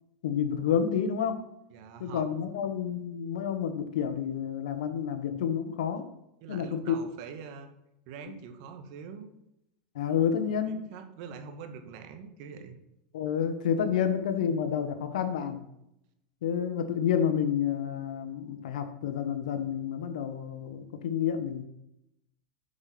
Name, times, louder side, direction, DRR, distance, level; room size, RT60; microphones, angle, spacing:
voice 1, 0.2-1.4 2.0-6.0 6.5-6.9 9.9-10.9 13.1-15.6 16.4-21.6, left 8 dB, 85° left, 9 dB, 1.2 m, -29 dB
voice 2, 1.7-2.5 6.4-7.7 8.1-9.3 10.7-12.8 13.9-14.1, right 6 dB, 60° right, 7 dB, 1.3 m, -44 dB
7.8 x 5.5 x 5.9 m, 0.82 s
supercardioid pair, 125°, 4 cm